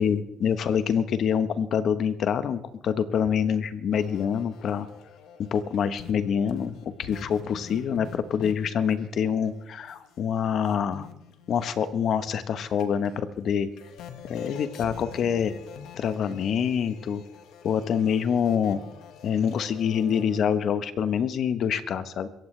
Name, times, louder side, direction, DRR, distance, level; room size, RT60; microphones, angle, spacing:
voice 1, 0.0-4.9 5.4-11.1 11.5-13.7 14.3-15.5 16.0-17.2 17.6-18.8 19.2-22.3, left 7 dB, 65° left, 12 dB, 1.1 m, -26 dB
sound 1, 3.9-10.2 10.6-12.5 12.8-20.4, left 7 dB, 85° left, 1.6 m, -45 dB
26.0 x 15.5 x 3.3 m, 0.91 s
cardioid pair, 90°, 0 cm